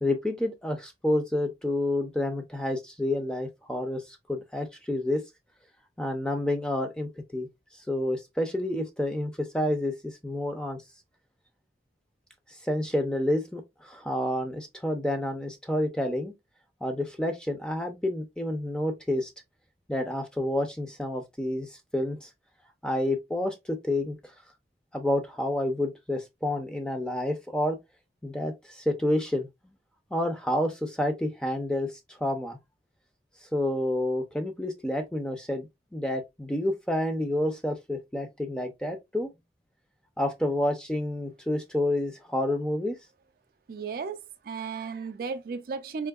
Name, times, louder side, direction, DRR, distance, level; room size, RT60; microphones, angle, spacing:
voice 1, 0.0-4.0 4.3-5.2 6.0-7.5 7.9-10.8 12.6-16.3 16.8-19.3 19.9-22.3 22.8-24.2 24.9-27.8 28.2-29.5 30.1-32.6 33.5-39.3 40.2-43.0, left 1 dB, 5° left, 0.5 m, -29 dB
voice 2, 43.7-44.2 44.4-46.1, right 5 dB, 55° right, 0.3 m, -34 dB
3.6 x 2.6 x 2.3 m
head